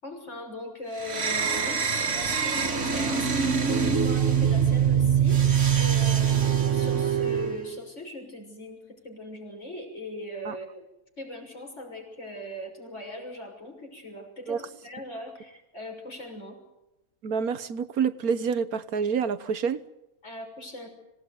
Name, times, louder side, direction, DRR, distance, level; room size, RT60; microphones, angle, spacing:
voice 1, 0.0-10.8 11.2-16.6 20.2-20.9, left 1 dB, 50° left, 2 dB, 6.8 m, -40 dB
sound 1, 1.0-7.6, right 7 dB, 55° right, 2.1 m, -23 dB
voice 2, 17.2-19.8, right 6 dB, 75° right, 13 dB, 1.6 m, -27 dB
26.0 x 18.5 x 9.6 m, 0.92 s
omnidirectional pair, 1.6 m